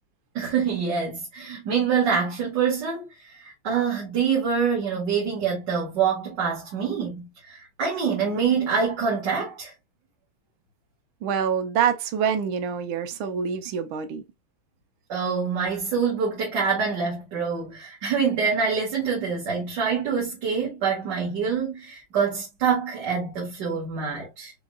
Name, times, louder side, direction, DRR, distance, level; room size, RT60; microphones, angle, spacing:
voice 1, 0.3-9.7 15.1-24.5, right 6 dB, 60° right, 2.2 m, -26 dB
voice 2, 11.2-14.2, right 7 dB, 80° right, 1.5 m, -26 dB
6.2 x 3.0 x 2.2 m
omnidirectional pair, 2.2 m